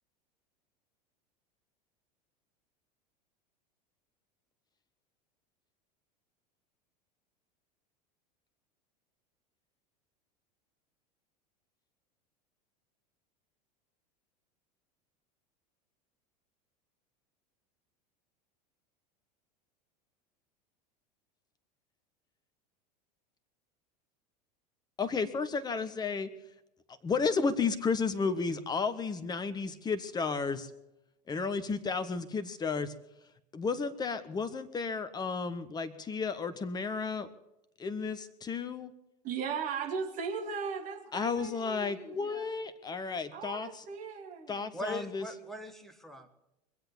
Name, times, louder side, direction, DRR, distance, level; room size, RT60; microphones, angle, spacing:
voice 1, 25.0-26.3 27.0-30.7 31.3-32.9 33.5-37.3 37.8-38.9 41.1-43.8 44.5-45.2, left 5 dB, 20° left, 1.3 m, -32 dB
voice 2, 39.2-42.5 43.3-44.7, right 6 dB, 40° right, 2.9 m, -38 dB
voice 3, 44.7-46.3, equal, ahead, 1.7 m, -40 dB
24.0 x 8.1 x 7.1 m
figure-of-eight pair, 80°, 21 cm